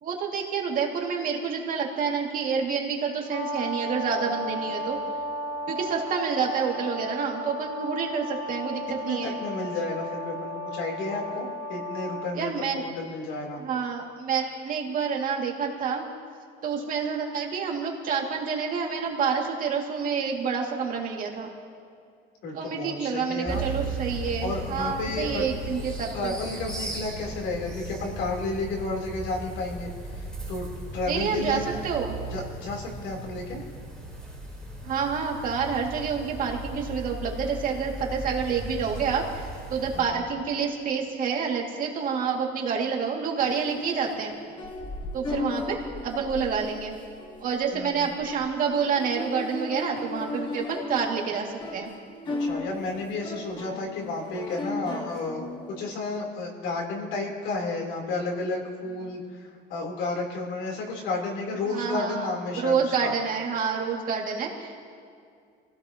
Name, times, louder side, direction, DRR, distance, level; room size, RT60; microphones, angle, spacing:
voice 1, 0.0-5.0 5.7-9.4 12.3-12.8 13.6-16.1 16.6-21.5 22.5-26.3 31.1-32.2 34.8-44.3 45.1-46.9 47.4-51.9 61.7-62.3 62.6-64.9, right 6 dB, 45° right, -1 dB, 2.4 m, -28 dB
Brass instrument, 3.3-12.3, equal, 85° left, 5.0 m, -34 dB
voice 2, 9.1-13.6 22.4-23.6 24.4-25.5 26.1-29.9 30.5-30.7 30.9-31.6 32.3-33.6 39.9-40.1 47.7-48.1 52.4-63.1, left 3 dB, 70° left, 0 dB, 3.7 m, -32 dB
sound 1, 23.4-40.0, right 2 dB, 5° left, 4.0 m, -37 dB
sound 2, 43.4-55.9, left 2 dB, 25° left, 1.4 m, -36 dB
28.0 x 16.5 x 3.0 m, 2.3 s
cardioid pair, 150°, 20 cm